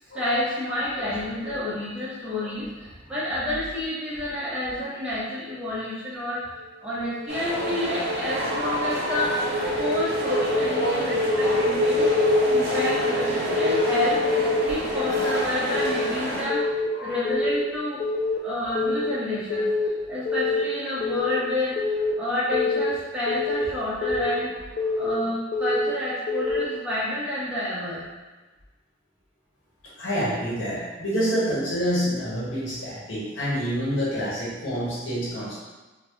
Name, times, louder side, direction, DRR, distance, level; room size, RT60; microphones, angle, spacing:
voice 1, 0.1-9.3 9.7-12.1 12.5-18.0 18.4-28.1, left 1 dB, 5° right, -10 dB, 0.6 m, -29 dB
sound 1, 6.9-15.8, left 1 dB, 90° right, 0.4 m, -27 dB
sound 2, 7.3-16.4, equal, 55° right, 0.8 m, -30 dB
voice 2, 8.3-9.3 9.6-9.9 12.8-13.0 16.9-17.2 18.6-18.7 30.0-35.6, equal, 70° left, -8 dB, 1.0 m, -28 dB
Keyboard (musical) / Alarm, 10.5-10.9 11.2-11.6 12.0-12.4 12.7-13.1 13.5-13.9 14.2-14.6 15.0-15.4 15.7-16.1 16.5-16.9 17.2-17.6 18.0-18.4 18.8-19.1 19.5-19.9 20.3-20.6 21.0-21.4 21.8-22.1 22.5-22.9 23.3-23.6 24.0-24.4 24.8-25.1 25.5-25.9 26.3-26.7, left 3 dB, 45° left, 0.4 m, -26 dB
3.5 x 2.1 x 3.0 m, 1.2 s
head